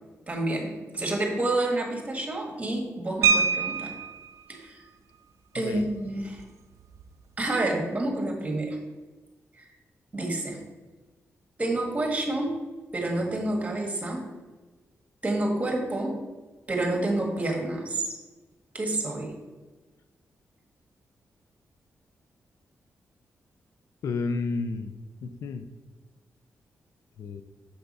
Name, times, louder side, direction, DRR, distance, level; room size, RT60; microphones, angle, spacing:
voice 1, 0.3-4.0 4.5-4.8 5.5-6.4 7.4-8.8 10.1-10.6 11.6-12.5 12.9-14.3 15.2-16.2 16.7-18.1 18.7-19.3, right 2 dB, 25° right, 1 dB, 1.6 m, -28 dB
sound 1, 3.2-4.3 5.8-5.9 6.2-6.4 6.8-7.1, right 6 dB, 75° right, 0.4 m, -25 dB
voice 2, 24.0-25.7 27.2-27.4, left 4 dB, 75° left, 10 dB, 0.4 m, -31 dB
6.9 x 3.4 x 5.3 m, 1.2 s
cardioid pair, 100°, 5 cm